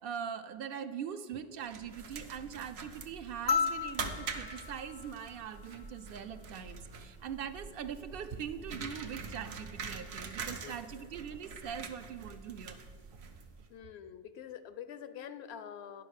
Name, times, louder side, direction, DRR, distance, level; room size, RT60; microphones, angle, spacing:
voice 1, 0.0-12.8 13.1-13.2, right 8 dB, 65° right, 11 dB, 0.7 m, -42 dB
sound 1, 1.6-13.7, right 4 dB, 85° right, 1.1 m, -44 dB
sound 2, 3.5-6.0 7.7-7.8, left 6 dB, 55° left, 0.5 m, -35 dB
voice 2, 10.6-11.1 13.7-16.0, left 9 dB, 80° left, 13 dB, 0.9 m, -46 dB
10.5 x 5.5 x 6.3 m, 2.1 s
omnidirectional pair, 1.1 m